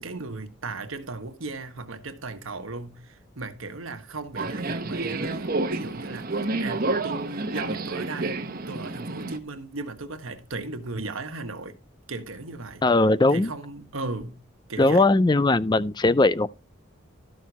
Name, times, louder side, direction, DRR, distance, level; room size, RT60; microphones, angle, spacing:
voice 1, 0.0-8.4 8.7-11.8 12.1-12.8 13.3-14.4 14.7-15.1, right 3 dB, 85° right, 1.5 m, -36 dB
Subway metro underground, 4.4-9.4, right 2 dB, 45° right, 1.0 m, -29 dB
voice 2, 12.8-13.5 14.8-16.5, left 2 dB, 20° left, 0.4 m, -19 dB
13.0 x 6.5 x 4.2 m
head